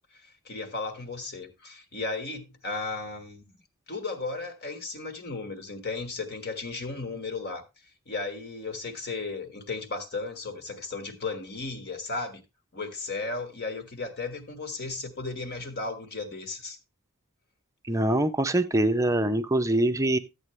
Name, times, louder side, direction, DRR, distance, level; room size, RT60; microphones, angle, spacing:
voice 1, 0.1-3.5 3.9-7.6 8.1-12.4 12.7-16.8, left 3 dB, 50° left, 1.5 m, -35 dB
voice 2, 17.9-20.2, right 1 dB, 15° right, 0.6 m, -24 dB
12.5 x 8.2 x 3.1 m
head